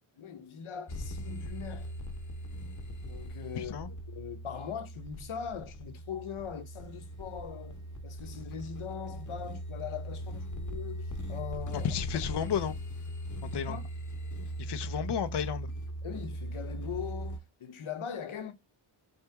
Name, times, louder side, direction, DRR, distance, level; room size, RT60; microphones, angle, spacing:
voice 1, 0.2-1.9 3.0-3.8 4.1-7.8 8.0-11.9 12.3-12.5 13.5-13.9 16.0-18.5, left 7 dB, 80° left, 0.9 m, -41 dB
sound 1, 0.9-17.4, equal, 40° left, 1.0 m, -39 dB
voice 2, 3.6-3.9 11.8-12.7 13.5-13.8 14.6-15.7, left 8 dB, 55° left, 0.6 m, -32 dB
4.3 x 2.9 x 3.4 m
wide cardioid pair, 140°, 49 cm